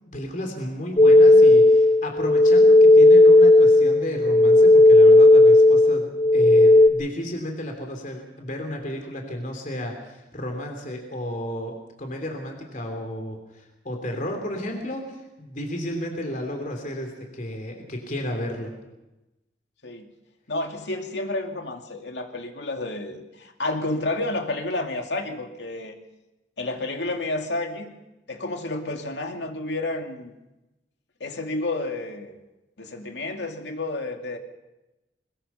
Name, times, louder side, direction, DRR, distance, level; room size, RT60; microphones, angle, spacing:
voice 1, 0.1-18.7, equal, 50° left, 3 dB, 3.3 m, -33 dB
sound 1, 1.0-6.9, left 2 dB, 30° left, 1.2 m, -13 dB
voice 2, 20.5-26.0 26.6-27.9 28.3-30.3 31.2-32.4 32.8-34.4, left 2 dB, 85° left, 4 dB, 2.5 m, -30 dB
22.0 x 21.0 x 5.7 m, 0.98 s
head